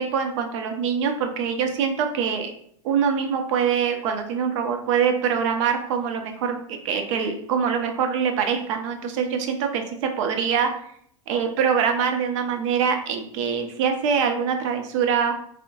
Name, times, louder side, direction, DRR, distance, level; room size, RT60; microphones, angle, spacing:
voice 1, 0.0-2.5 2.8-10.7 11.3-15.3, right 7 dB, 65° right, 5 dB, 0.6 m, -24 dB
3.5 x 2.1 x 2.8 m, 0.65 s
hypercardioid pair, 100°, 17 cm